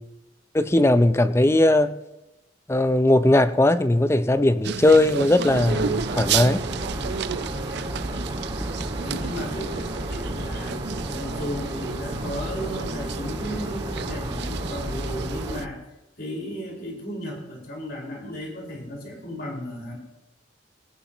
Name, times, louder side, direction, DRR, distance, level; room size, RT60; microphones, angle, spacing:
voice 1, 0.5-2.0 2.7-6.6, left 1 dB, 15° left, 0.5 m, -19 dB
sound 1, 4.6-15.7, right 7 dB, 65° right, 0.4 m, -32 dB
sound 2, 5.5-15.6, right 1 dB, 25° right, 2.0 m, -32 dB
voice 2, 9.0-10.8 11.0-15.8 16.2-20.0, equal, 60° left, 5.0 m, -35 dB
18.0 x 18.0 x 3.0 m
head